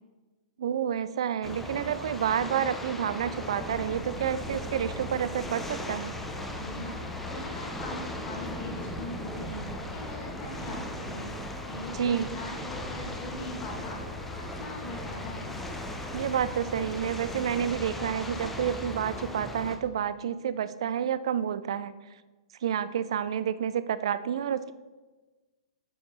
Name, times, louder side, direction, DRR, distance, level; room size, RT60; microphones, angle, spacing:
voice 1, 0.6-6.2 11.9-12.3 16.1-21.9 22.6-24.7, right 9 dB, 55° right, 15 dB, 0.4 m, -29 dB
sound 1, 1.4-19.8, left 1 dB, 5° left, 0.7 m, -38 dB
sound 2, 3.6-18.7, right 2 dB, 35° right, 1.4 m, -44 dB
voice 2, 6.5-14.0 14.3-15.5, left 1 dB, 30° left, -2 dB, 2.4 m, -41 dB
8.7 x 7.1 x 3.1 m, 1.3 s
figure-of-eight pair, 115°, 3 cm